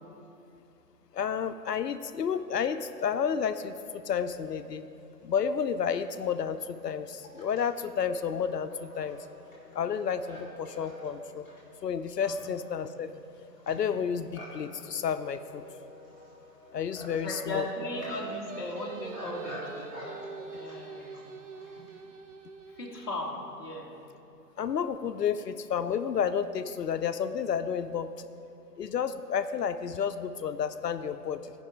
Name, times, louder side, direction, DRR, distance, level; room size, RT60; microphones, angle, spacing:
voice 1, 1.1-3.7 4.1-4.8 5.2-9.2 9.7-11.5 11.8-13.1 13.7-15.6 16.7-17.6 24.6-28.1 28.8-31.5, left 7 dB, 75° left, 10 dB, 0.6 m, -31 dB
Livestock farm animals working animals, 5.2-5.3 6.1-22.0, equal, 10° right, 2.0 m, -48 dB
voice 2, 17.1-19.9 20.5-21.3 22.7-23.9, left 2 dB, 15° left, -6 dB, 0.7 m, -37 dB
Singing, 17.9-23.3, right 5 dB, 50° right, 0.5 m, -44 dB
13.5 x 5.4 x 5.0 m, 2.9 s
figure-of-eight pair, 150°, 49 cm